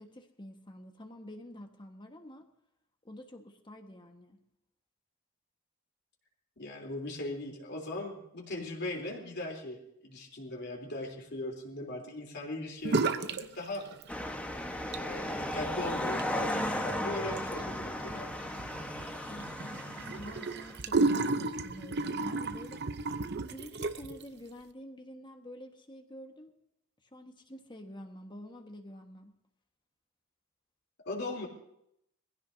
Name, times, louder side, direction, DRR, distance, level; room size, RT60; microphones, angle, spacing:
voice 1, 0.0-2.5 3.0-4.4 19.3-22.8 23.5-26.5 27.1-29.3, left 1 dB, 25° left, 5 dB, 1.5 m, -48 dB
voice 2, 6.6-13.8 14.9-18.3 31.0-31.5, left 2 dB, 55° left, 0 dB, 3.5 m, -39 dB
sound 1, 12.8-13.5 13.7-14.4 14.8-24.2, right 3 dB, 55° right, 0.8 m, -34 dB
sound 2, 14.1-20.8, left 1 dB, 5° left, 1.2 m, -35 dB
22.5 x 15.5 x 2.8 m, 0.77 s
head